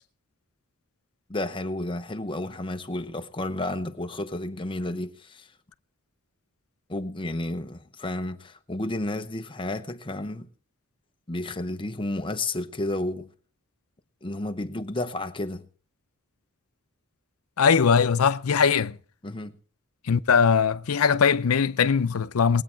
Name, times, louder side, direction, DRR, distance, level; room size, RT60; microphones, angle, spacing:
voice 1, 1.3-5.5 6.9-10.5 11.3-13.3 14.2-15.7 19.2-19.6, left 2 dB, 25° left, 0.9 m, -31 dB
voice 2, 17.6-19.0 20.1-22.6, left 6 dB, 90° left, 0.6 m, -21 dB
20.5 x 8.6 x 4.5 m
head